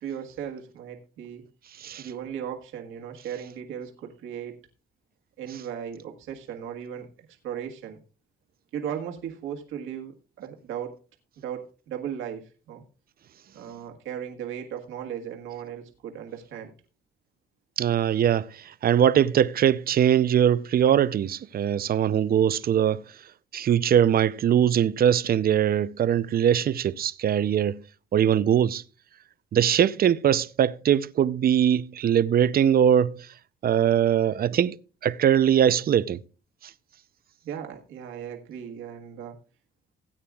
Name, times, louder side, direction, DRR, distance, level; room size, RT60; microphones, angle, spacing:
voice 1, 0.0-1.5 2.0-4.6 5.4-7.1 7.4-8.0 8.7-11.0 11.4-12.8 13.5-16.7 37.4-39.4, right 9 dB, 85° right, 1.7 m, -36 dB
voice 2, 17.8-18.5 18.8-23.0 23.5-27.8 28.1-28.8 29.5-33.3 33.6-34.8 35.0-36.2, right 9 dB, 50° right, 0.6 m, -21 dB
17.0 x 8.9 x 2.4 m
cardioid pair, 90°, 20 cm